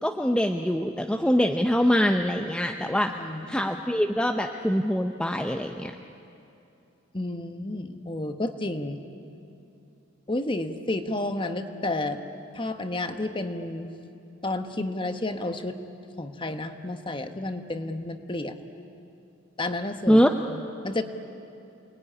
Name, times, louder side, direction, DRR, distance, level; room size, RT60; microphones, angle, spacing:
voice 1, 0.0-3.1 3.5-5.9 20.1-20.3, equal, 5° left, 4 dB, 0.6 m, -23 dB
voice 2, 3.1-3.6 7.1-9.0 10.3-12.2 12.5-13.9 14.4-15.8 16.2-18.6 19.6-20.2 20.5-21.0, left 2 dB, 25° left, 8 dB, 1.2 m, -31 dB
28.5 x 21.0 x 9.9 m, 2.8 s
head